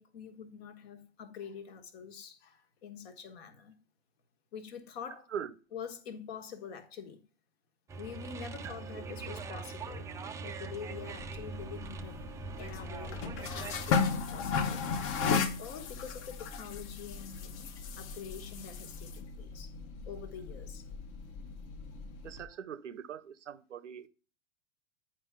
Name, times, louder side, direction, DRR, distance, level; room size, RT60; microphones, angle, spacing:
voice 1, 0.0-3.8 4.5-5.3 5.7-7.2 8.0-10.1 10.4-12.2 12.6-14.8 15.6-17.7 18.0-19.7 20.1-20.8, left 7 dB, 55° left, 1.4 m, -46 dB
sound 1, 7.9-13.9, right 4 dB, 10° right, 0.4 m, -42 dB
voice 2, 8.6-9.0 22.2-24.1, right 8 dB, 85° right, 0.7 m, -42 dB
sound 2, 11.2-22.4, left 5 dB, 35° left, 0.9 m, -36 dB
9.6 x 4.8 x 3.6 m
figure-of-eight pair, 100°, 36 cm